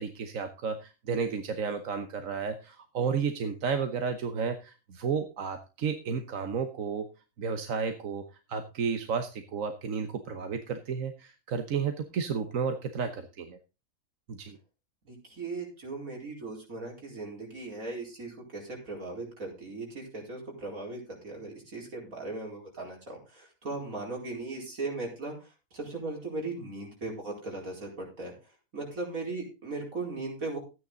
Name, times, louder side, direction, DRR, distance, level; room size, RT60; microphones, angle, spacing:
voice 1, 0.0-7.1 7.4-13.6 14.3-14.6, right 6 dB, 75° right, 8 dB, 1.4 m, -32 dB
voice 2, 15.0-25.3 25.7-28.3 28.7-30.6, right 3 dB, 90° right, 0 dB, 4.9 m, -38 dB
13.5 x 9.5 x 3.9 m, 0.29 s
omnidirectional pair, 1.4 m